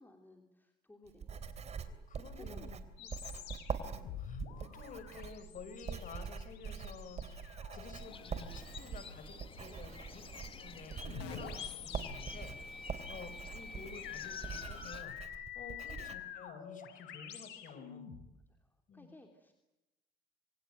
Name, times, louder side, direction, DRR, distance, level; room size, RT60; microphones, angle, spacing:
voice 1, 0.0-2.1 2.3-3.6 9.7-10.1 12.9-13.2 16.0-16.1 18.5-19.5, left 1 dB, 10° left, 4 dB, 3.2 m, -60 dB
Writing, 1.1-16.1, right 6 dB, 40° right, 3.1 m, -44 dB
voice 2, 1.8-2.8 3.8-10.2 10.5-18.1 18.9-19.1, left 5 dB, 50° left, 12 dB, 5.6 m, -52 dB
sound 1, 3.0-18.3, left 8 dB, 85° left, 6.1 m, -48 dB
sound 2, 8.0-15.0, left 6 dB, 30° left, 2.2 m, -51 dB
26.5 x 24.5 x 9.2 m, 0.95 s
cardioid pair, 110°, 17 cm